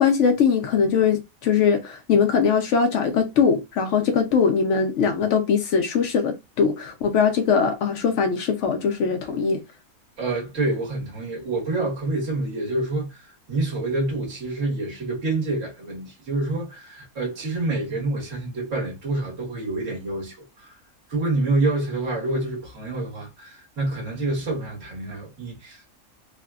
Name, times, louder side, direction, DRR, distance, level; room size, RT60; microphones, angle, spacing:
voice 1, 0.0-9.6, left 6 dB, 65° left, 0.8 m, -21 dB
voice 2, 10.2-20.7 21.1-26.0, right 2 dB, 60° right, 1.6 m, -27 dB
3.2 x 2.1 x 2.3 m
omnidirectional pair, 1.5 m